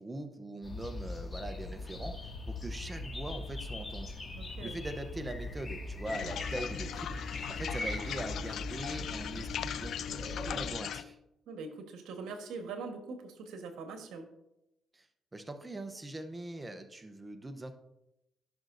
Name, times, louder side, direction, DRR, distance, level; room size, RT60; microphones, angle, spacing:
voice 1, 0.0-4.2 4.6-11.2 14.9-15.1 15.3-17.7, right 1 dB, 20° right, 7 dB, 0.8 m, -42 dB
sound 1, 0.6-10.7, left 2 dB, 20° left, 2.1 m, -40 dB
voice 2, 4.3-4.7 11.5-14.3, right 4 dB, 85° right, 5 dB, 1.4 m, -42 dB
sound 2, 6.1-11.0, left 9 dB, 70° left, 0.4 m, -39 dB
15.0 x 6.1 x 2.7 m, 0.88 s
cardioid pair, 90°, 0 cm